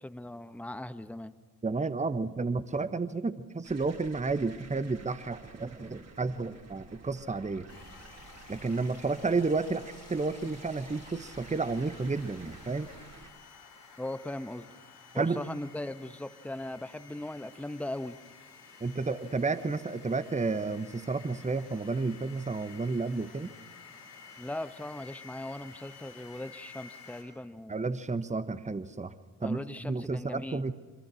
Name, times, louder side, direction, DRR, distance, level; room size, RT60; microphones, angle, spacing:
voice 1, 0.0-1.3 14.0-14.6 15.1-18.2 24.4-27.8 29.4-30.6, left 1 dB, 5° left, 11 dB, 1.3 m, -39 dB
voice 2, 1.6-7.7 8.5-12.9 15.1-15.4 18.8-23.5 27.7-29.1 29.4-30.7, right 3 dB, 15° right, 12 dB, 1.3 m, -31 dB
sound 1, 3.6-13.3, right 4 dB, 35° right, 3.3 m, -52 dB
sound 2, 7.7-27.2, left 5 dB, 80° left, 5.2 m, -52 dB
26.0 x 26.0 x 6.4 m, 1.3 s
figure-of-eight pair, 40°, 47 cm